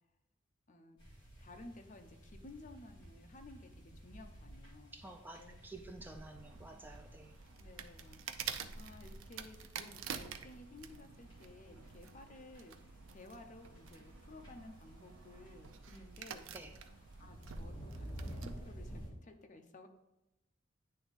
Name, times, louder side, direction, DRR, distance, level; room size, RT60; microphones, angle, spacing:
sound 1, 1.0-19.1, right 1 dB, 25° left, 2.1 m, -53 dB
voice 1, 1.4-5.0 5.4-5.6 7.6-16.5 16.9-19.9, left 2 dB, 40° left, 5 dB, 0.7 m, -55 dB
voice 2, 4.9-7.4 16.5-16.7, right 2 dB, 10° right, 4 dB, 0.4 m, -51 dB
sound 2, 6.0-18.7, right 6 dB, 85° right, 0.5 m, -49 dB
9.8 x 3.4 x 4.1 m, 0.95 s
head